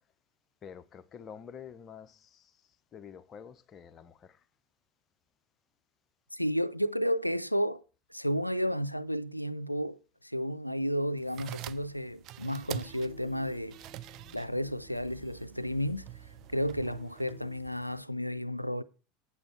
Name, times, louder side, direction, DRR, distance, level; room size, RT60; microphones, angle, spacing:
voice 1, 0.6-2.5 2.9-4.4, left 7 dB, 30° left, 0.7 m, -48 dB
voice 2, 6.3-7.8 8.1-13.8 14.3-16.1 16.5-18.8, equal, 90° left, 0.4 m, -32 dB
sound 1, 11.2-18.0, right 15 dB, 45° right, 0.4 m, -46 dB
sound 2, 12.4-17.6, right 5 dB, 75° right, 4.8 m, -53 dB
8.7 x 8.1 x 4.4 m
figure-of-eight pair, 75°, 0 cm